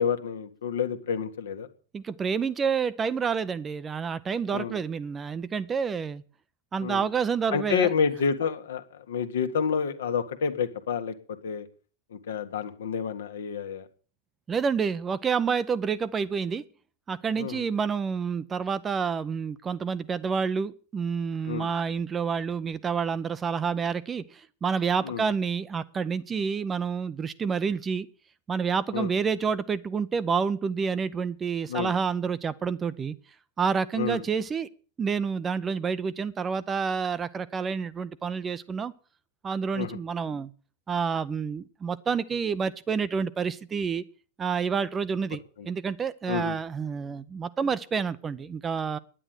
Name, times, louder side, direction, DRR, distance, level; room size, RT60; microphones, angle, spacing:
voice 1, 0.0-1.7 4.5-4.8 6.8-7.0 7.5-11.1 11.4-11.6 12.3-13.8 17.4-17.5 21.5-21.7 25.0-25.2 28.9-29.1 31.7-31.9 34.0-34.2 39.7-40.0 45.6-45.7 46.3-46.6, left 6 dB, 60° left, 8 dB, 1.4 m, -29 dB
voice 2, 1.9-6.2 6.7-7.9 14.5-16.6 17.1-28.1 28.5-33.2 33.6-34.7 35.0-38.9 39.4-40.5 40.9-44.0 44.4-49.0, right 6 dB, 20° right, 16 dB, 0.7 m, -28 dB
10.0 x 9.9 x 7.8 m, 0.39 s
figure-of-eight pair, 90°, 0 cm